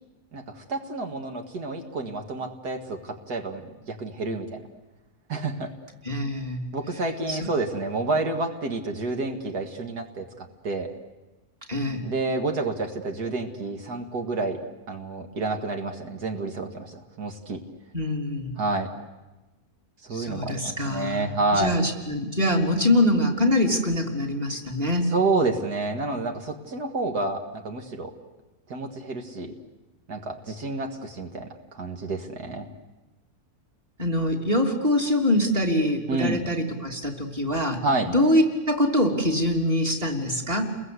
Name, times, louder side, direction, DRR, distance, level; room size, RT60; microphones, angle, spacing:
voice 1, 0.3-4.6 5.3-5.7 6.7-10.3 10.6-10.9 12.0-14.6 14.9-17.6 18.6-18.9 20.0-21.7 25.1-28.1 28.7-29.5 30.1-32.7 36.1-36.4 37.8-38.1, right 3 dB, 85° right, 4 dB, 2.4 m, -29 dB
voice 2, 6.0-6.6 7.3-7.5 11.7-12.0 17.9-18.5 20.1-25.0 34.0-40.7, left 1 dB, 25° right, 1 dB, 3.2 m, -24 dB
30.0 x 22.0 x 8.2 m, 1.1 s
omnidirectional pair, 1.6 m